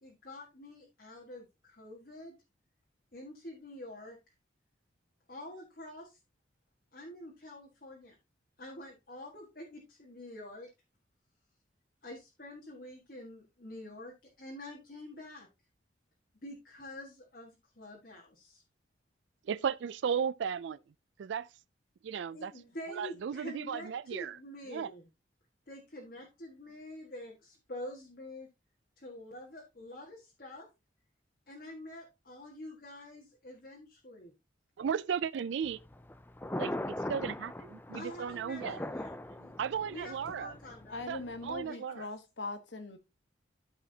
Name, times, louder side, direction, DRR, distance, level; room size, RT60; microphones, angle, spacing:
voice 1, 0.0-2.4 3.1-4.3 5.3-6.2 6.9-8.2 8.6-10.7 12.0-15.5 16.4-18.6 22.3-25.1 25.7-28.5 29.0-30.7 31.5-34.3 37.9-39.5 39.9-41.1 41.6-41.9, left 1 dB, 50° left, 1.7 m, -47 dB
voice 2, 19.5-20.8 21.2-21.5 22.0-22.5 23.0-24.3 24.7-24.9 34.8-35.8 36.6-36.7 37.1-38.8 39.6-40.5 41.1-42.1, right 7 dB, 75° right, 0.3 m, -35 dB
Thunder, 35.6-41.7, left 1 dB, 10° left, 0.4 m, -41 dB
voice 3, 40.9-43.0, left 2 dB, 75° left, 1.3 m, -41 dB
13.5 x 4.9 x 2.8 m
head